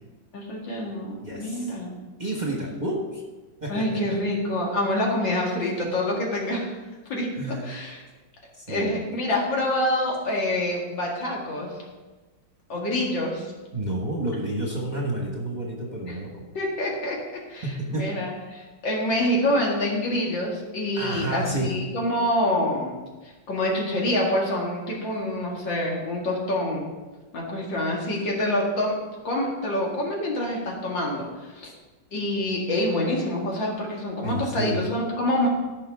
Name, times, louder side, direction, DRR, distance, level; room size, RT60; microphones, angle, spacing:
voice 1, 0.3-1.9 3.7-6.8 7.1-8.0 8.7-11.7 12.7-13.5 16.1-16.2 16.5-17.2 17.5-23.0 23.2-26.9 27.3-29.0 29.2-31.7 32.1-35.5, left 1 dB, 75° left, -2 dB, 2.7 m, -26 dB
voice 2, 1.2-1.7 2.2-3.2 3.6-4.2 7.3-7.6 8.6-9.0 13.7-16.5 17.6-18.1 21.0-21.8 34.2-34.8, right 1 dB, 25° right, -1 dB, 1.3 m, -30 dB
14.0 x 5.6 x 3.6 m, 1.2 s
omnidirectional pair, 2.1 m